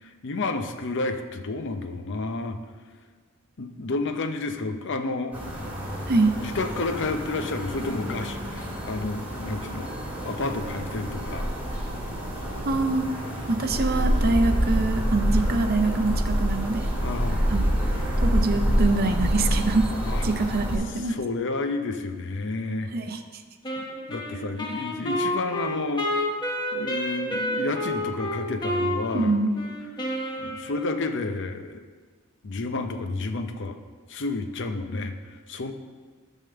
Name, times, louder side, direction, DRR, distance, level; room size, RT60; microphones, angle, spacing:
voice 1, 0.0-2.6 3.6-5.4 6.4-9.9 10.2-11.5 17.0-17.4 20.0-20.2 20.9-22.9 23.8-26.1 26.7-29.3 30.4-31.8 32.4-33.8 34.1-35.1 35.5-35.7, left 3 dB, 55° left, 7 dB, 0.7 m, -30 dB
sound 1, 5.3-20.8, equal, 5° right, 1.9 m, -27 dB
voice 2, 12.6-13.1 13.5-16.9 17.5-17.9 18.2-19.9 20.2-21.2 22.9-23.2 29.1-29.6, right 3 dB, 45° right, 6 dB, 0.6 m, -24 dB
Wind instrument woodwind instrument, 23.6-31.1, equal, 20° left, 1.0 m, -30 dB
10.5 x 3.7 x 6.8 m, 1.5 s
head